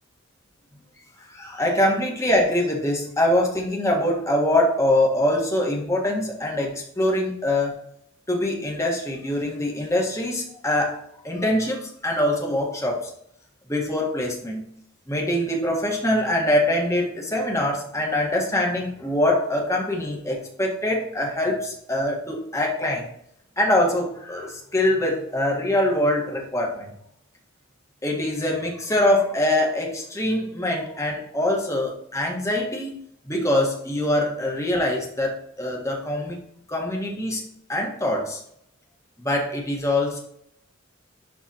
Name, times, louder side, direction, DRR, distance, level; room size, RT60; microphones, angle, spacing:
voice 1, 1.3-7.8 8.3-11.0 11.2-13.1 13.7-14.7 15.1-23.1 23.6-26.9 28.0-32.9 33.3-36.4 36.7-37.4 37.7-38.4 39.2-40.2, left 1 dB, 15° left, -1 dB, 1.7 m, -23 dB
11.0 x 4.1 x 3.0 m, 0.71 s
head